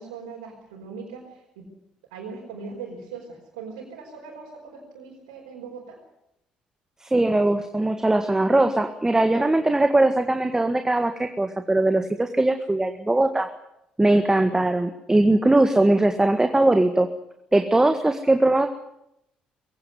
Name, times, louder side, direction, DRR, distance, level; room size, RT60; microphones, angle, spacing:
voice 1, 0.0-1.6 2.1-6.0, right 5 dB, 80° right, -3 dB, 4.9 m, -40 dB
voice 2, 7.0-13.5 14.0-17.1 17.5-18.7, right 2 dB, 15° right, 7 dB, 1.8 m, -20 dB
22.5 x 16.5 x 9.7 m, 0.83 s
hypercardioid pair, 50°, 4 cm